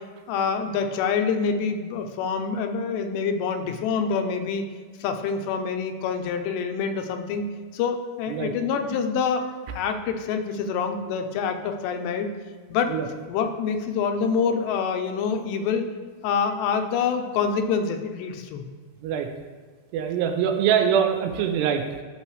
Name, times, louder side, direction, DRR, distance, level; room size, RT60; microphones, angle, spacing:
voice 1, 0.3-4.6 5.0-7.5 7.7-9.5 9.7-12.3 12.7-13.0 13.3-15.9 16.2-18.6, left 6 dB, 85° left, 6 dB, 2.9 m, -26 dB
voice 2, 19.9-21.8, right 8 dB, 90° right, 5 dB, 2.8 m, -23 dB
13.5 x 6.3 x 3.3 m, 1.5 s
omnidirectional pair, 4.9 m